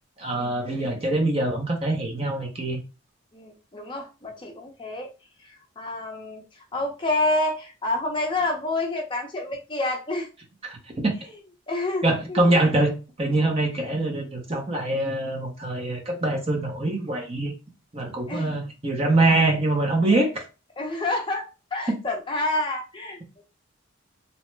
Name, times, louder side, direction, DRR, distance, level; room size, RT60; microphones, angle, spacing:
voice 1, 0.2-2.8 10.6-10.7 11.0-11.2 12.0-12.9 13.2-17.5 17.9-20.3, right 2 dB, 30° right, 0.6 m, -24 dB
voice 2, 3.3-5.1 5.8-6.4 6.7-10.3 11.7-12.6 18.3-18.6 20.1-20.2 20.8-23.4, left 2 dB, 25° left, 0.5 m, -28 dB
2.8 x 2.1 x 3.1 m
head